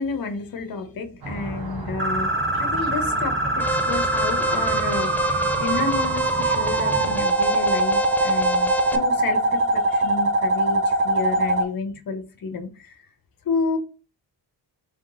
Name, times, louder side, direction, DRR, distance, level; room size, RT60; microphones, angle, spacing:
voice 1, 0.0-2.3 2.6-5.3 5.6-12.7 13.5-13.8, left 4 dB, 50° left, 1.1 m, -30 dB
sound 1, 1.2-7.2, right 3 dB, 50° right, 1.5 m, -34 dB
sound 2, 2.0-11.6, right 2 dB, 25° right, 0.7 m, -23 dB
Alarm, 3.6-9.0, right 1 dB, 5° left, 0.3 m, -28 dB
3.7 x 3.6 x 3.8 m
wide cardioid pair, 125°, 44 cm